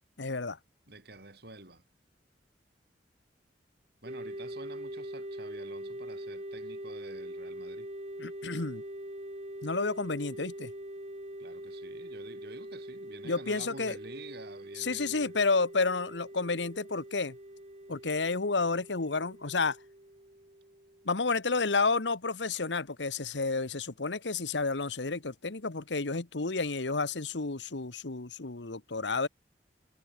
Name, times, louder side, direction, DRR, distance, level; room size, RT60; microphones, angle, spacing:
voice 1, 0.2-0.6 8.2-8.8 9.6-10.7 13.2-14.0 14.8-17.4 17.9-19.8 21.0-29.3, left 4 dB, 85° left, 1.3 m, -31 dB
voice 2, 0.9-1.8 4.0-7.9 11.4-15.3, right 2 dB, 60° right, 6.6 m, -49 dB
sound 1, 4.0-21.4, right 1 dB, 40° right, 5.7 m, -43 dB
head